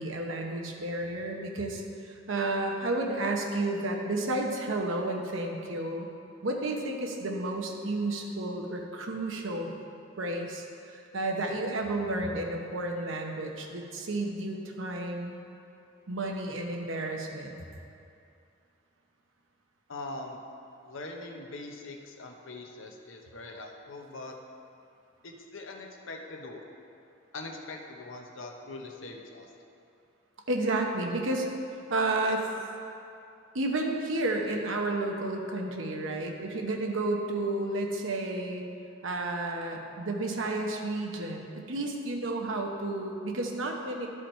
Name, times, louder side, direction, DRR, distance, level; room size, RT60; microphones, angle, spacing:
voice 1, 0.0-6.1 6.4-9.7 10.2-15.3 16.1-17.6 30.5-31.5 31.9-32.5 33.5-38.6 39.0-44.1, right 2 dB, 80° right, 2 dB, 1.0 m, -31 dB
voice 2, 19.9-20.4 20.8-24.3 25.2-26.6 27.3-29.5, left 2 dB, 80° left, 2 dB, 0.9 m, -42 dB
11.5 x 4.9 x 4.4 m, 2.6 s
head